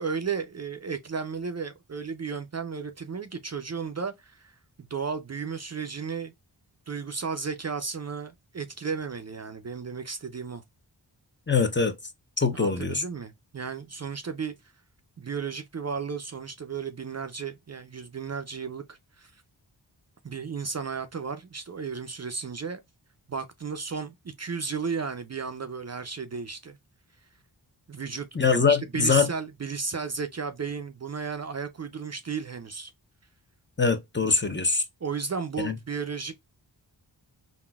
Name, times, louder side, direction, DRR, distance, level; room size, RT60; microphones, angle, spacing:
voice 1, 0.0-6.3 6.9-10.6 12.5-14.5 15.2-19.4 20.2-22.8 23.3-26.8 27.9-28.3 28.7-32.9 35.0-36.4, right 5 dB, 35° right, 0.5 m, -34 dB
voice 2, 11.5-11.9 12.4-13.0 28.3-29.3 33.8-34.8 35.6-35.7, left 5 dB, 25° left, 0.6 m, -23 dB
3.8 x 2.2 x 2.2 m
cardioid pair, 45°, 44 cm